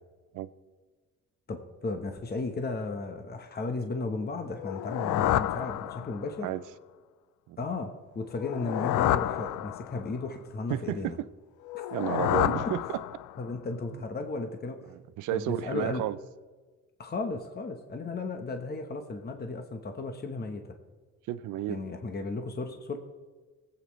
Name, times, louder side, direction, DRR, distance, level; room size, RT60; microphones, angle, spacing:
voice 1, 1.5-6.5 7.6-11.2 11.7-11.8 13.4-14.9 15.3-16.1 17.0-20.7 21.7-23.0, left 3 dB, 30° left, 1.1 m, -35 dB
sound 1, 4.6-6.4 8.3-10.2 11.7-13.5, left 14 dB, 80° left, 0.5 m, -29 dB
voice 2, 10.7-11.3 11.9-12.8 15.2-16.2 21.3-21.8, right 13 dB, 85° right, 0.6 m, -31 dB
20.0 x 8.3 x 3.2 m
cardioid pair, 90°, 30 cm